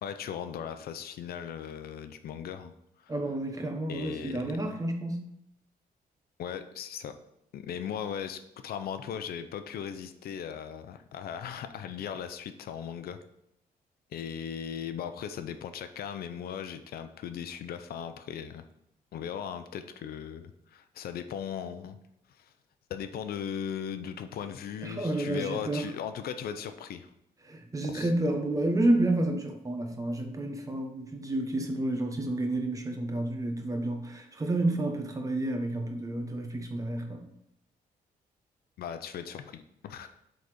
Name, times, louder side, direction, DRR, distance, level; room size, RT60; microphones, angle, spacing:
voice 1, 0.0-2.7 3.0-3.1 3.9-4.8 6.4-7.1 7.5-13.2 14.1-18.6 19.1-22.0 22.4-22.5 22.9-27.1 27.9-28.1 38.8-40.1, left 8 dB, 75° left, 9 dB, 0.7 m, -38 dB
voice 2, 3.1-5.2 24.8-25.8 27.4-37.3, right 1 dB, 20° right, 4 dB, 1.2 m, -30 dB
8.2 x 4.1 x 5.0 m, 0.81 s
cardioid pair, 130°, 16 cm